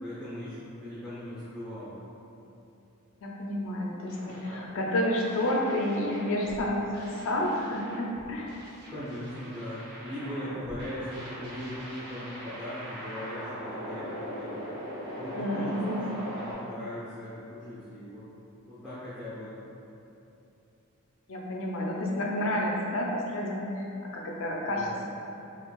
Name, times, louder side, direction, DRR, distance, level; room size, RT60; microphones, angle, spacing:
voice 1, 0.0-2.0 8.9-14.6 15.1-18.3 18.7-19.5 24.7-25.1, equal, 10° left, -15 dB, 0.7 m, -39 dB
voice 2, 3.2-8.5 15.3-16.0 21.3-25.1, left 1 dB, 65° left, -2 dB, 0.5 m, -30 dB
sound 1, 4.1-16.5, equal, 50° right, 0.7 m, -41 dB
4.4 x 2.4 x 2.3 m, 2.8 s
head